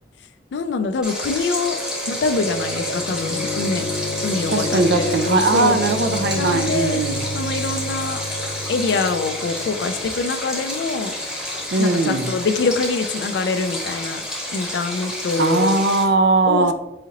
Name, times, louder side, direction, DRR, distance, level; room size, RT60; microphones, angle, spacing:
voice 1, 0.5-1.8 2.1-3.8 4.2-5.8 6.3-7.0 7.3-8.2 8.7-11.1 11.8-14.2 14.5-15.8 16.5-16.7, left 4 dB, 90° left, 0.4 m, -24 dB
sound 1, 0.9-13.0, left 1 dB, 30° right, 0.7 m, -31 dB
Stream, 1.0-16.0, left 1 dB, 5° right, 0.9 m, -30 dB
voice 2, 4.5-7.2 11.7-12.4 15.4-16.7, right 3 dB, 80° right, 0.4 m, -19 dB
4.8 x 2.9 x 2.8 m
head